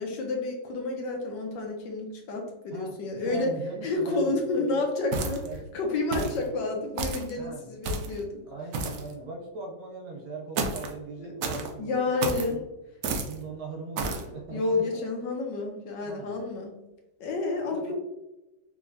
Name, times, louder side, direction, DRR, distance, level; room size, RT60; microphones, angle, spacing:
voice 1, 0.0-3.5 3.8-5.4 5.7-8.4 11.2-11.3 11.8-12.6 14.5-16.7 17.2-17.9, left 3 dB, 75° left, 2 dB, 1.3 m, -30 dB
voice 2, 2.7-4.9 5.4-5.6 6.1-6.6 7.4-7.8 8.4-12.2 12.5-12.6 13.2-15.1 16.0-16.3 17.7-17.9, right 3 dB, 70° right, 0 dB, 1.4 m, -40 dB
sound 1, 5.1-5.6 6.1-6.4 7.0-7.3 7.8-8.2 8.7-9.1 10.6-10.9 11.4-11.7 12.2-12.5 13.0-13.4 14.0-14.3, right 3 dB, 85° right, 0.7 m, -31 dB
3.5 x 3.1 x 2.5 m, 0.97 s
omnidirectional pair, 2.0 m